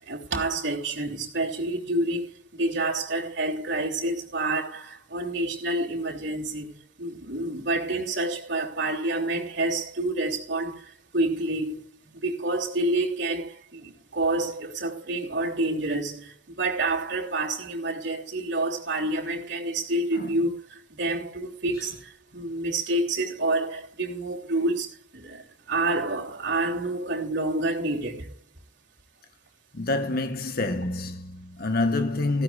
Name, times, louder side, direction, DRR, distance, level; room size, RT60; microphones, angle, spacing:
voice 1, 0.1-11.8 12.1-28.3, right 2 dB, 60° right, 3.2 m, -28 dB
voice 2, 29.7-32.4, left 2 dB, 50° left, 1.2 m, -27 dB
18.0 x 15.5 x 2.5 m
head